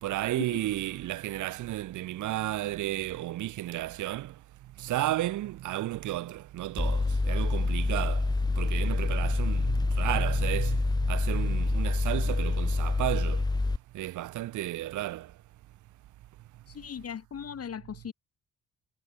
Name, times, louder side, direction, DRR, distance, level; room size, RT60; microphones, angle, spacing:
voice 1, 0.0-4.3 4.8-8.2 8.6-13.4 13.9-15.3, right 15 dB, 75° right, 1.1 m, -33 dB
Mechanical fan, 6.8-13.8, left 3 dB, 15° left, 1.1 m, -27 dB
voice 2, 16.7-18.1, left 8 dB, 50° left, 7.1 m, -38 dB
cardioid pair, 90°, 30 cm